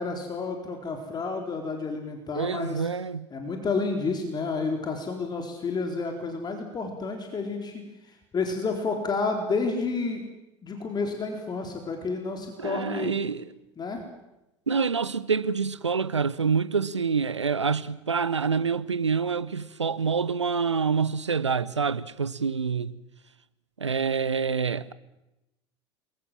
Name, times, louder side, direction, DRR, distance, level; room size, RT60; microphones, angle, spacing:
voice 1, 0.0-2.9 3.3-7.7 8.0-10.2 10.6-13.1 13.8-14.0, left 4 dB, 30° left, 4.2 m, -30 dB
voice 2, 2.3-3.3 12.6-13.5 14.7-23.0 23.8-24.9, right 5 dB, 85° right, 0.9 m, -27 dB
28.0 x 22.0 x 7.6 m
figure-of-eight pair, 70°, 15 cm